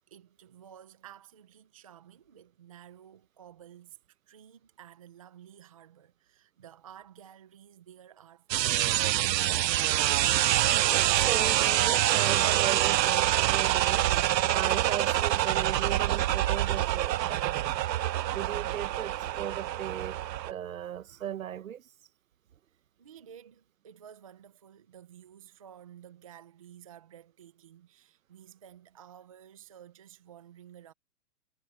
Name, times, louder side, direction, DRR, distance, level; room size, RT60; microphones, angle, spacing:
voice 1, 0.0-9.5 22.7-30.9, right 9 dB, 20° right, 0.7 m, -53 dB
sound 1, 8.5-20.5, right 13 dB, 85° right, 0.6 m, -26 dB
voice 2, 11.1-14.1 14.5-17.4 18.3-20.2 20.5-21.9, right 10 dB, 55° right, 1.2 m, -37 dB
hypercardioid pair, 170°, 49 cm